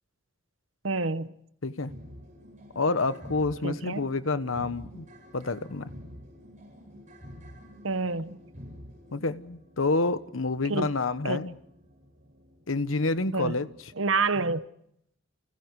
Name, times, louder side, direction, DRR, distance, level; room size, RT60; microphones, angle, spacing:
voice 1, 0.8-1.3 3.6-4.1 7.8-8.4 10.7-10.9 11.2-11.4 13.3-13.6 14.0-14.6, right 3 dB, 85° right, 1.1 m, -28 dB
sound 1, 1.9-14.5, equal, 40° right, 7.3 m, -49 dB
voice 2, 2.7-5.0 5.3-5.9 9.1-11.5 12.7-13.7, left 3 dB, 90° left, 1.2 m, -28 dB
29.5 x 29.5 x 4.8 m
head